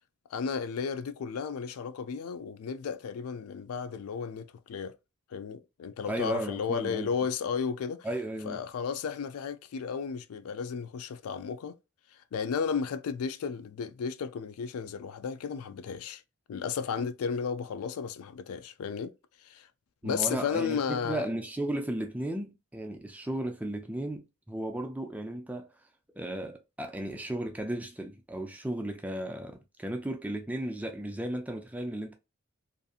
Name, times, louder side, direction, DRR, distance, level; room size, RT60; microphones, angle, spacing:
voice 1, 0.3-4.9 5.3-8.1 8.4-11.7 12.3-16.2 16.5-19.1 19.4-19.7 20.0-21.3, left 6 dB, 80° left, 0.3 m, -33 dB
voice 2, 6.1-7.1 8.0-8.6 20.0-25.7 26.2-32.1, right 1 dB, 5° right, 0.3 m, -35 dB
2.7 x 2.6 x 2.3 m
head